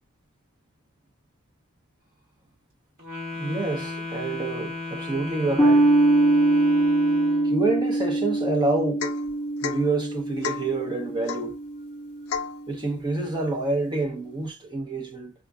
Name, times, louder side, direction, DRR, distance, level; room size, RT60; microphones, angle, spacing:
Wind instrument woodwind instrument, 3.0-7.6, left 2 dB, 45° right, 1.9 m, -35 dB
voice 1, 3.3-5.9 7.4-9.1 9.6-11.6 12.7-15.3, right 2 dB, 20° right, 0.9 m, -28 dB
sound 1, 5.6-12.3, right 2 dB, 5° left, 1.9 m, -23 dB
Domestic sounds home sounds / Chink clink / Drip, 9.0-9.3 9.6-9.9 10.4-10.7 11.3-11.5 12.3-12.6, left 6 dB, 90° left, 0.5 m, -31 dB
4.3 x 2.5 x 2.4 m
head